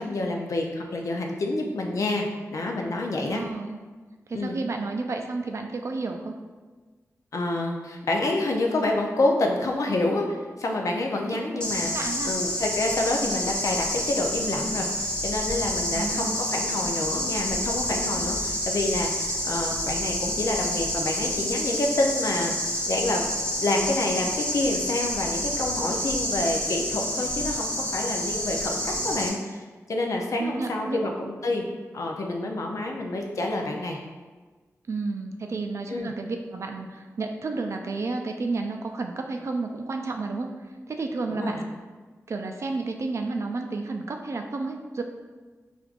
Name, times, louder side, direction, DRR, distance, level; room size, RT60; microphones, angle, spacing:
voice 1, 0.0-3.4 4.3-4.6 7.3-23.3 23.6-31.6 31.9-34.0 35.9-36.1 41.3-41.6, left 2 dB, 70° left, 1 dB, 0.5 m, -28 dB
voice 2, 3.2-3.8 4.3-6.3 11.5-12.4 15.9-16.5 30.4-31.1 34.9-40.5 40.9-41.6 42.3-45.0, right 3 dB, 55° right, 4 dB, 0.4 m, -31 dB
sound 1, 11.6-29.3, equal, 15° left, 0.9 m, -29 dB
4.5 x 2.5 x 2.4 m, 1.3 s
cardioid pair, 60°, 6 cm